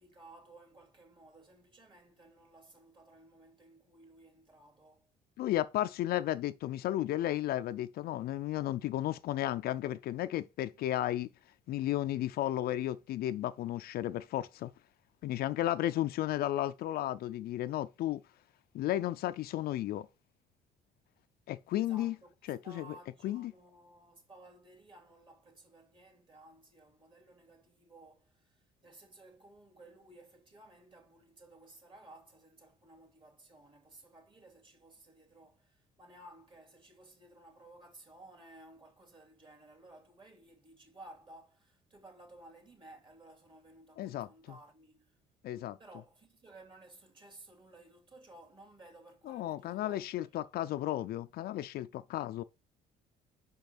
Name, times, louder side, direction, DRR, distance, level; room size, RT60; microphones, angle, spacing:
voice 1, 0.0-5.1 21.8-22.3 22.6-45.2 45.8-50.5, right 2 dB, 30° right, 2.8 m, -57 dB
voice 2, 5.4-11.3 11.7-14.7 15.2-18.2 18.7-20.1 21.5-22.1 22.5-22.9 23.2-23.5 44.0-44.6 45.4-45.8 49.3-52.4, left 13 dB, 65° left, 0.5 m, -33 dB
5.7 x 5.3 x 6.0 m
cardioid pair, 110°, 17 cm